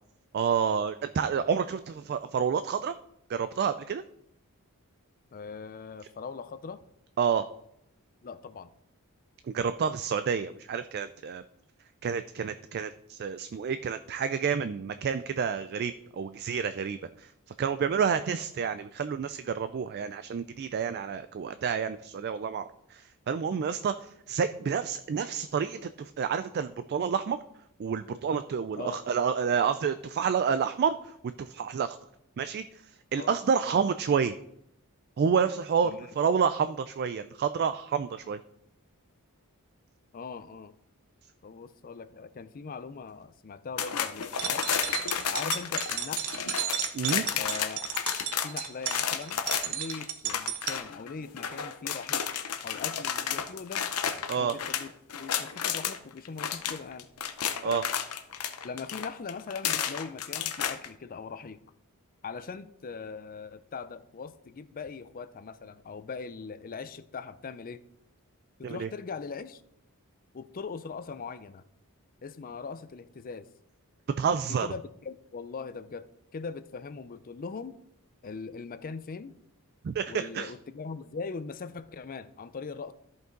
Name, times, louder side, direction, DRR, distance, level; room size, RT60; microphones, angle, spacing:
voice 1, 0.3-2.9 3.3-4.0 7.2-7.4 9.5-11.4 12.0-17.3 17.6-27.4 27.8-32.0 32.4-32.6 33.1-34.3 35.2-38.4 46.9-47.3 54.3-54.5 57.6-57.8 68.6-68.9 74.2-74.7 79.8-80.5, right 6 dB, 45° right, 11 dB, 0.3 m, -29 dB
voice 2, 5.3-6.8 8.2-8.7 28.8-29.0 33.1-33.4 33.6-33.8 35.8-36.0 40.1-40.7 41.4-44.7 45.3-46.3 47.4-47.9 48.4-52.2 52.6-53.8 54.4-54.9 55.2-57.1 57.6-57.9 58.6-61.6 62.2-67.8 68.7-69.6 70.3-71.6 72.2-73.5 74.6-76.0 76.3-77.7 78.2-79.3 80.1-82.9, left 5 dB, 40° left, 14 dB, 0.4 m, -40 dB
sound 1, 43.8-56.0 56.3-60.9, left 8 dB, 85° left, 0.7 m, -32 dB
sound 2, 44.2-50.8, right 10 dB, 70° right, 0.8 m, -34 dB
13.5 x 5.4 x 3.8 m, 0.77 s
head